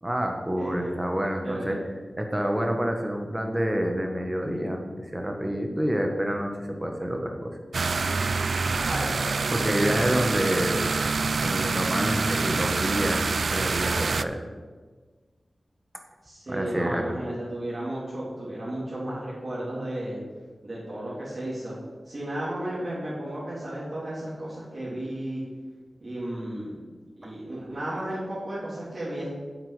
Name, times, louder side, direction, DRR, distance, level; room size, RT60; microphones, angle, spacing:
voice 1, 0.0-1.8 2.1-7.6 9.5-10.8 11.4-14.4 16.5-17.0 27.2-27.3, equal, 15° right, 3 dB, 1.4 m, -28 dB
voice 2, 0.6-0.9 1.4-1.8 8.7-9.6 9.9-10.3 16.2-20.2 20.6-21.8 22.0-25.4 26.0-26.8 27.2-29.3, right 1 dB, 50° right, -11 dB, 3.4 m, -34 dB
sound 1, 7.7-14.2, right 4 dB, 70° right, 0.3 m, -26 dB
9.6 x 7.5 x 5.1 m, 1.4 s
wide cardioid pair, 80°, 0 cm